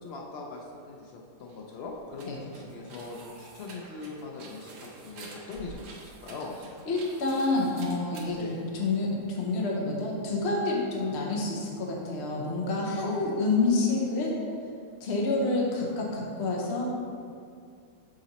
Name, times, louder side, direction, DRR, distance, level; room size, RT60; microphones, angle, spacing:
voice 1, 0.0-6.5 8.4-8.7 13.0-13.3, left 3 dB, 85° left, 0 dB, 0.5 m, -41 dB
sound 1, 1.4-9.3, right 3 dB, 90° right, 1.5 m, -49 dB
voice 2, 6.9-14.4 15.0-16.9, left 3 dB, 50° left, -2 dB, 1.0 m, -28 dB
6.6 x 4.1 x 4.1 m, 2.3 s
omnidirectional pair, 1.7 m